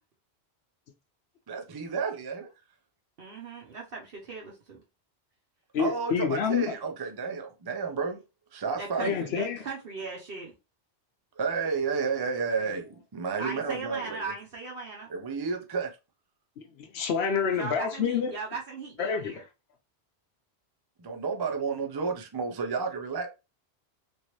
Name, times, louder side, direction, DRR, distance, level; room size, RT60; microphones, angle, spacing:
voice 1, 1.5-2.5 5.8-8.2 8.5-9.2 11.4-14.3 15.1-16.0 21.0-23.3, right 5 dB, 35° right, 0.4 m, -31 dB
voice 2, 3.2-4.8 8.8-10.5 13.4-15.1 17.4-19.4, right 4 dB, 60° right, 0.9 m, -38 dB
voice 3, 5.7-6.7 9.0-9.6 16.8-18.3 19.0-19.3, left 7 dB, 75° left, 0.8 m, -28 dB
3.1 x 2.7 x 3.0 m
omnidirectional pair, 1.1 m